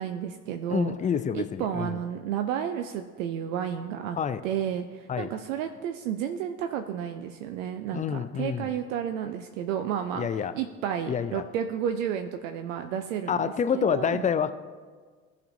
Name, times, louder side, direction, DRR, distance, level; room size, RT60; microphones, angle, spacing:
voice 1, 0.0-0.9 1.3-4.2 4.4-10.3 10.5-14.3, right 9 dB, 70° right, 7 dB, 0.6 m, -32 dB
voice 2, 0.7-2.0 4.2-4.4 5.1-5.3 7.9-8.7 10.1-10.5 11.1-11.4 13.3-14.5, left 7 dB, 20° left, 12 dB, 0.4 m, -28 dB
15.5 x 5.3 x 2.6 m, 1.5 s
figure-of-eight pair, 60°, 40 cm